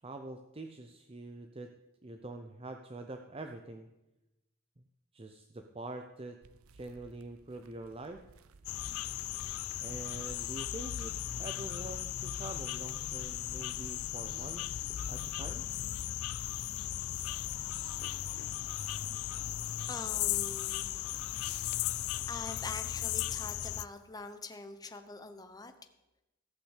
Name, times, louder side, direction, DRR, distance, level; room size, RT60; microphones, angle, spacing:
voice 1, 0.0-1.7 2.0-3.9 4.8-4.9 5.1-6.4 6.7-8.2 9.8-15.6, right 2 dB, 25° right, 5 dB, 0.6 m, -45 dB
sound 1, 6.4-11.9, right 3 dB, 80° right, 0.7 m, -59 dB
sound 2, 8.7-23.9, left 13 dB, 80° left, 0.4 m, -36 dB
voice 2, 19.9-21.1 21.6-22.0 22.3-25.7, left 3 dB, 20° left, 8 dB, 0.8 m, -44 dB
15.0 x 6.0 x 8.2 m, 0.97 s
head